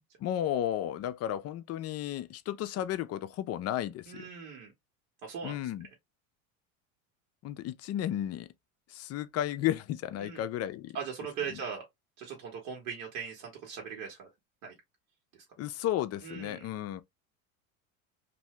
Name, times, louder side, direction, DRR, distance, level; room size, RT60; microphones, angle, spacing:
voice 1, 0.2-4.3 5.4-5.9 7.4-8.5 8.9-11.0 11.5-11.6 15.6-17.0, left 12 dB, 40° left, 0.5 m, -33 dB
voice 2, 4.1-4.7 5.2-5.6 10.2-10.4 10.9-11.8 12.2-14.3 14.6-14.7 15.3-15.4 16.2-16.7, right 6 dB, 70° right, 1.4 m, -40 dB
2.7 x 2.6 x 3.1 m
hypercardioid pair, 90°, 42 cm